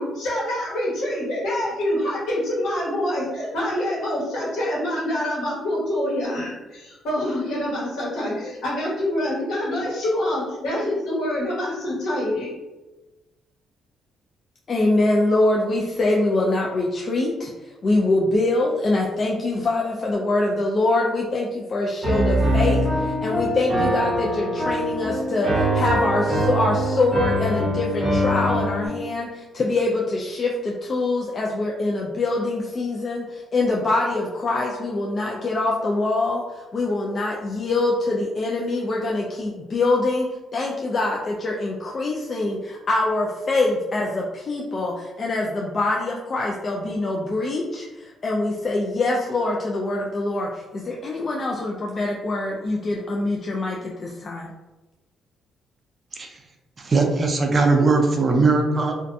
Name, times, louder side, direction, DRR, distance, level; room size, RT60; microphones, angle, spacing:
voice 1, 0.0-12.5, left 1 dB, 80° left, -6 dB, 1.1 m, -26 dB
voice 2, 14.7-54.5, left 2 dB, 40° left, -2 dB, 0.3 m, -24 dB
Piano, 22.0-28.9, equal, ahead, 0.9 m, -23 dB
voice 3, 56.8-58.9, right 3 dB, 35° right, 3 dB, 0.4 m, -19 dB
2.5 x 2.2 x 2.6 m, 1.1 s
cardioid pair, 90°, 0 cm